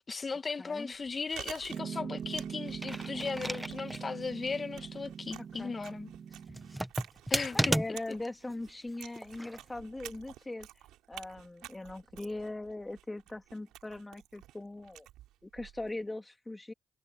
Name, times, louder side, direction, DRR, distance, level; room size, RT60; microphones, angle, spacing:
voice 1, 0.1-6.1 7.3-7.6, left 4 dB, 40° left, 2.0 m, -37 dB
voice 2, 0.6-0.9 5.6-5.7 7.5-10.7 11.1-15.1 15.4-16.7, left 2 dB, 20° left, 3.1 m, -40 dB
Chewing mastication, 0.9-16.0, right 14 dB, 80° right, 4.8 m, -51 dB
Piano, 1.7-6.8, right 7 dB, 60° right, 3.7 m, -42 dB
sound 1, 2.7-4.1 4.5-4.6 6.5-8.3 9.2-9.6, right 1 dB, 5° right, 1.7 m, -33 dB
hypercardioid pair, 45°, 0 cm